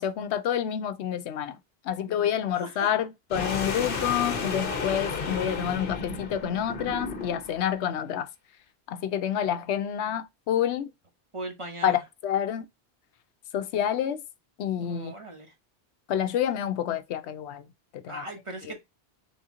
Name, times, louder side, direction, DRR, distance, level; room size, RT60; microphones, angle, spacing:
voice 1, 0.0-1.6 1.8-8.3 8.9-10.9 11.8-12.7 13.5-14.2 14.6-15.1 16.1-17.6 17.9-18.2, left 9 dB, 85° left, 0.9 m, -28 dB
voice 2, 2.5-2.9 11.3-12.0 14.8-15.5 18.1-18.8, right 1 dB, 30° right, 0.8 m, -38 dB
sound 1, 3.3-7.6, left 4 dB, 60° left, 1.0 m, -32 dB
3.7 x 2.8 x 3.6 m
omnidirectional pair, 1.1 m